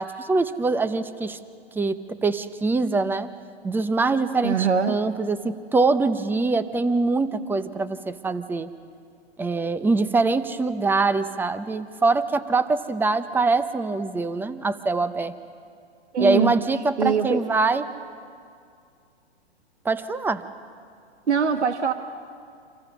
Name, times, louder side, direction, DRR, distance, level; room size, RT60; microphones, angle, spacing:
voice 1, 0.0-1.4 1.7-3.3 3.6-8.7 9.4-15.3 16.2-17.9 19.8-20.4, right 3 dB, 5° right, 13 dB, 0.7 m, -23 dB
voice 2, 4.4-5.0 16.1-16.6 17.0-17.4 21.3-21.9, right 6 dB, 90° right, 8 dB, 1.4 m, -22 dB
29.0 x 26.0 x 6.2 m, 2.3 s
hypercardioid pair, 125°, 33 cm